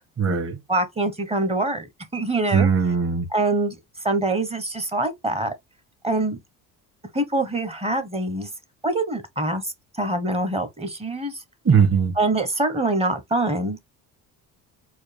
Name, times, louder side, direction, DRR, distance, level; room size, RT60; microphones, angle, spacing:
voice 1, 0.2-0.6 2.5-3.3 11.6-12.1, right 6 dB, 35° right, 1.5 m, -19 dB
voice 2, 0.7-1.9 2.1-2.7 3.3-3.8 4.0-5.5 6.0-6.4 7.1-8.5 8.8-11.3 12.2-13.8, right 2 dB, 15° right, 0.8 m, -24 dB
4.5 x 2.2 x 3.3 m
cardioid pair, 135°, 37 cm